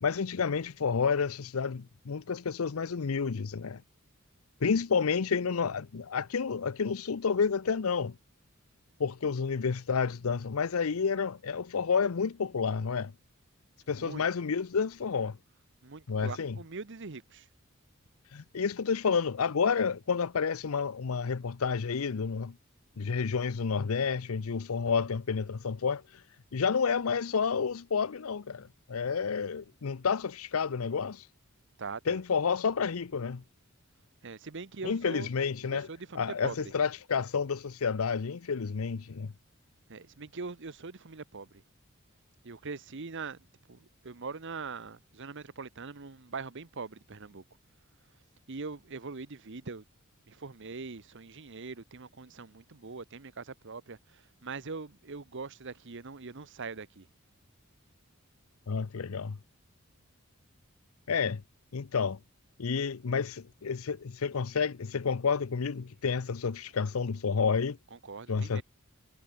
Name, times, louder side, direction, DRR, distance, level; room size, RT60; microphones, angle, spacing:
voice 1, 0.0-3.8 4.6-8.1 9.0-13.1 13.9-15.4 16.1-16.6 18.3-22.5 23.0-26.2 26.5-31.3 32.1-33.4 34.8-35.9 36.2-39.3 58.7-59.4 61.1-61.4 61.7-62.2 62.6-67.8 68.3-68.6, left 5 dB, 80° left, 0.6 m, -30 dB
voice 2, 15.8-17.5 31.8-32.2 34.2-35.3 35.7-36.6 39.9-41.6 42.4-43.4 43.7-47.4 48.5-49.8 50.3-57.1 67.9-68.6, right 4 dB, 60° right, 1.0 m, -42 dB
head